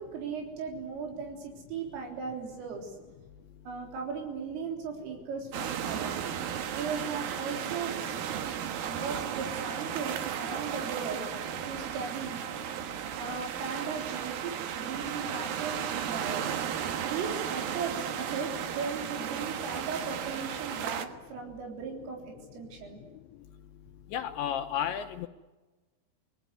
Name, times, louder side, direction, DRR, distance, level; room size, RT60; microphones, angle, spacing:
voice 1, 0.0-3.0 3.7-6.2 6.7-8.0 8.6-11.3 11.7-12.4 13.2-16.4 17.0-23.0, right 5 dB, 85° right, 1 dB, 6.2 m, -37 dB
sound 1, 5.5-21.1, right 9 dB, 65° right, 2.7 m, -35 dB
voice 2, 24.1-25.3, left 9 dB, 75° left, 5 dB, 3.1 m, -32 dB
28.5 x 20.0 x 9.5 m, 1.2 s
omnidirectional pair, 5.7 m